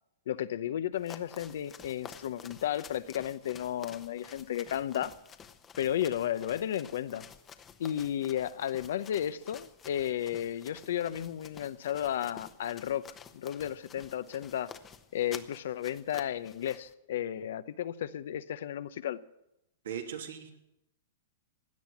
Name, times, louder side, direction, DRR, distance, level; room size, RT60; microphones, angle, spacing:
voice 1, 0.3-5.1 5.8-7.2 7.8-13.0 13.3-14.7 15.1-19.2, left 10 dB, 70° left, 14 dB, 0.8 m, -33 dB
sound 1, 0.9-16.9, left 7 dB, 20° left, 1.0 m, -51 dB
voice 2, 19.8-20.6, right 8 dB, 85° right, 3 dB, 2.9 m, -39 dB
17.0 x 10.5 x 7.2 m, 0.85 s
hypercardioid pair, 135°, 0 cm